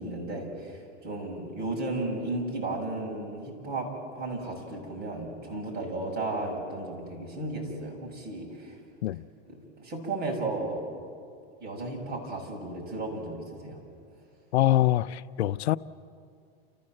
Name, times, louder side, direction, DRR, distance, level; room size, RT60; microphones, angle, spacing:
voice 1, 0.0-3.9 4.1-8.8 9.4-10.8 11.6-13.8, right 2 dB, 30° right, 6.4 m, -34 dB
voice 2, 14.5-15.8, left 14 dB, 90° left, 0.6 m, -24 dB
29.5 x 15.0 x 7.7 m
supercardioid pair, 130°, 31 cm